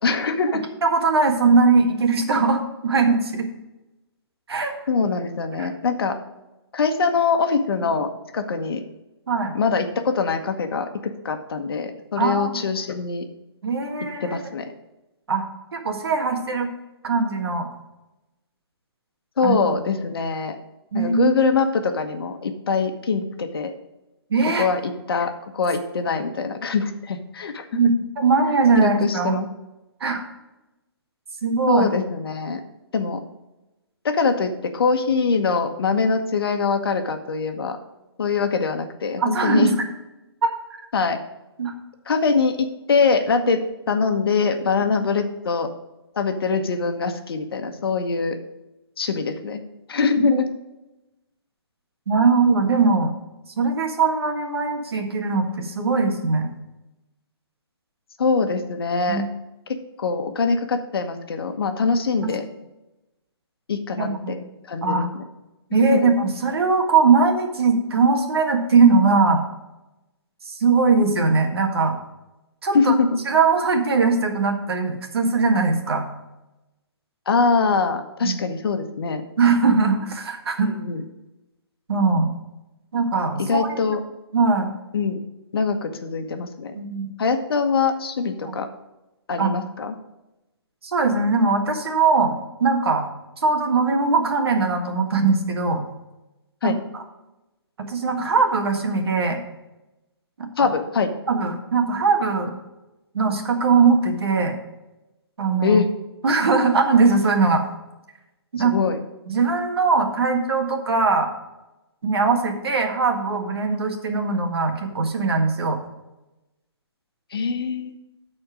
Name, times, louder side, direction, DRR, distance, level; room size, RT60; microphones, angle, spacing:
voice 1, 0.0-0.6 4.9-6.2 6.7-8.8 9.5-13.2 14.2-14.7 19.4-20.6 20.9-23.7 24.6-27.7 28.8-29.5 31.7-32.6 32.9-33.2 34.0-37.8 38.2-39.7 40.9-41.2 42.1-43.6 43.9-45.7 46.1-48.4 49.0-49.6 49.9-50.3 58.2-59.2 60.0-62.4 63.7-64.4 64.7-65.2 65.8-66.1 72.7-73.1 77.3-79.2 80.8-81.0 83.4-84.0 84.9-85.2 85.5-86.7 87.2-88.7 89.3-89.9 96.6-96.8 100.6-101.1 105.6-105.9 108.6-109.0 117.3-117.9, left 4 dB, 60° left, 6 dB, 1.1 m, -23 dB
voice 2, 0.8-3.5 4.5-4.7 5.6-5.7 9.3-9.5 12.2-12.6 13.6-14.4 15.3-15.4 15.7-16.7 17.0-17.7 19.4-19.6 20.9-21.3 24.3-24.7 27.7-29.4 30.0-30.2 31.4-31.8 39.2-39.7 40.4-40.5 41.6-41.7 50.2-50.4 52.1-53.1 53.6-56.5 59.1-59.2 62.2-62.3 64.0-64.4 64.8-65.1 65.7-69.4 70.4-72.0 72.6-72.9 73.3-76.0 78.2-78.4 79.4-80.7 81.9-82.3 82.9-84.0 84.3-84.7 86.7-87.1 88.4-88.5 89.4-89.5 90.8-92.3 92.6-93.1 93.4-95.8 96.6-96.7 97.8-99.4 100.6-100.7 101.3-102.5 103.1-104.5 105.4-105.8 106.2-107.7 108.5-108.7 109.3-111.3 112.0-115.8, right 4 dB, 65° right, 4 dB, 1.7 m, -20 dB
12.5 x 4.3 x 5.0 m, 0.99 s
hypercardioid pair, 165°, 14 cm